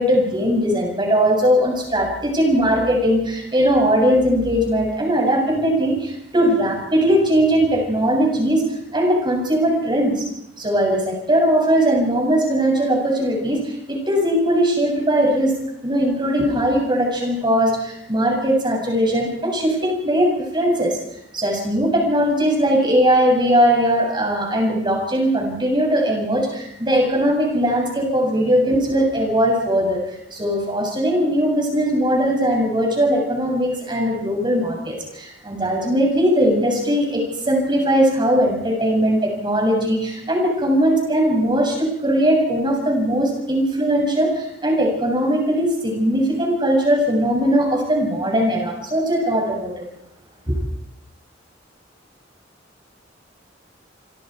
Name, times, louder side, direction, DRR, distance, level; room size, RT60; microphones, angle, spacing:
voice 1, 0.0-8.6 8.9-10.2 10.6-15.5 15.8-21.0 21.3-49.8 50.5-50.6, equal, 25° right, 1 dB, 7.3 m, -19 dB
27.5 x 24.5 x 4.7 m, 0.76 s
head